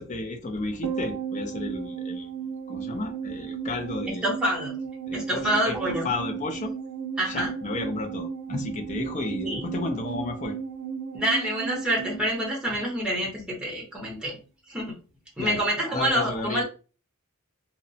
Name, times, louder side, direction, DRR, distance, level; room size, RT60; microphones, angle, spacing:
voice 1, 0.0-2.3 2.7-4.2 5.1-6.7 7.2-10.6 15.4-15.6 15.9-16.6, left 2 dB, 35° left, 0.4 m, -33 dB
sound 1, 0.8-13.4 13.6-13.7, right 6 dB, 60° right, 0.6 m, -35 dB
voice 2, 4.2-4.7 5.1-6.1 7.2-7.5 8.5-8.6 9.4-9.6 11.1-14.4 14.7-15.0 15.4-16.6, equal, 5° right, 0.8 m, -27 dB
2.8 x 2.0 x 2.6 m
head